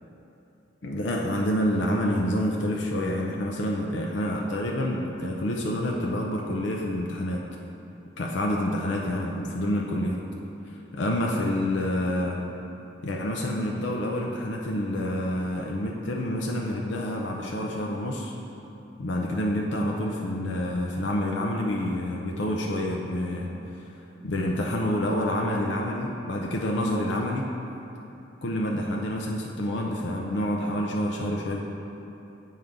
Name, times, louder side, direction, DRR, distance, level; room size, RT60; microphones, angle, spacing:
voice 1, 0.8-7.5 8.2-10.2 10.9-12.4 13.0-18.3 19.0-23.5 24.2-27.5 28.4-31.6, left 1 dB, 65° left, -1 dB, 0.5 m, -28 dB
7.7 x 5.4 x 3.6 m, 3.0 s
head